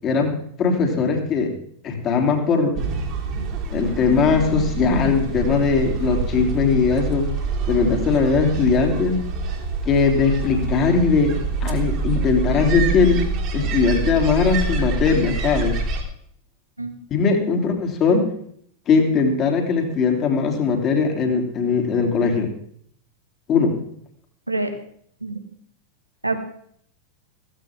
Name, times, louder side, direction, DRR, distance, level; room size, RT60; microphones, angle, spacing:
voice 1, 0.0-0.3 0.6-1.5 1.8-2.7 3.7-7.3 7.7-9.2 9.8-13.2 13.5-15.8 17.1-18.2 18.9-22.5 23.5-23.7, left 5 dB, 30° left, 3 dB, 3.3 m, -20 dB
sound 1, 2.8-16.0, right 4 dB, 40° right, 3.3 m, -26 dB
voice 2, 16.8-17.6 24.5-24.7 25.2-25.4 26.2-26.4, right 2 dB, 85° right, 7 dB, 1.9 m, -27 dB
16.0 x 15.5 x 3.7 m, 0.64 s
figure-of-eight pair, 90°, 0 cm